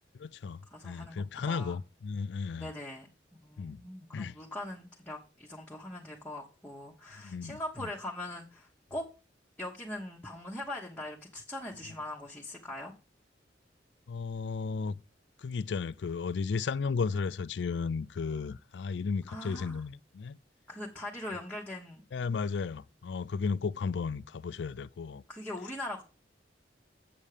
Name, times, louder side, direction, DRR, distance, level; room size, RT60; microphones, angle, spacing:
voice 1, 0.2-0.6 0.8-2.7 3.6-3.8 4.1-4.4 7.2-7.6 14.1-15.0 15.4-20.4 22.1-25.2, left 5 dB, 70° left, 0.4 m, -34 dB
voice 2, 0.7-1.8 2.6-3.1 3.4-9.1 9.6-12.9 19.3-19.8 20.7-22.0 25.3-26.0, left 1 dB, 10° left, 1.1 m, -41 dB
7.8 x 7.2 x 4.9 m
head